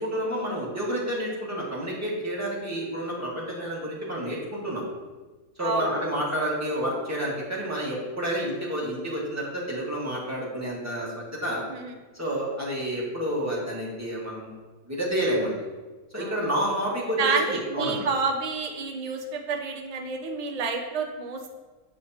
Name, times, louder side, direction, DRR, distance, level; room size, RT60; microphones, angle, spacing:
voice 1, 0.0-4.8 5.6-11.6 12.2-14.5 14.9-15.6 16.1-18.1, equal, 10° right, -5 dB, 1.5 m, -29 dB
voice 2, 5.6-5.9 11.7-11.9 16.2-16.4 17.2-21.5, right 4 dB, 45° right, 3 dB, 0.5 m, -29 dB
7.7 x 5.4 x 2.8 m, 1.3 s
omnidirectional pair, 1.5 m